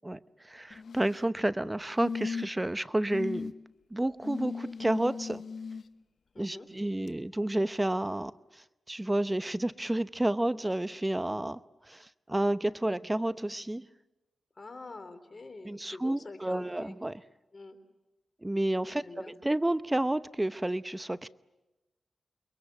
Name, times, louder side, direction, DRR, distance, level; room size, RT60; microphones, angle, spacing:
voice 1, 0.0-3.5 3.9-5.4 6.4-11.6 11.9-13.9 15.6-17.2 18.4-21.3, right 1 dB, 15° right, 15 dB, 0.8 m, -30 dB
sound 1, 0.7-1.3 2.0-2.7 3.1-3.5 4.2-5.8 7.1-7.2, left 5 dB, 75° left, 0.9 m, -37 dB
voice 2, 6.3-6.7 14.6-16.9 17.5-17.8 18.9-19.3, left 3 dB, 45° left, 9 dB, 3.6 m, -46 dB
29.0 x 22.5 x 8.3 m, 1.1 s
cardioid pair, 50°, 0 cm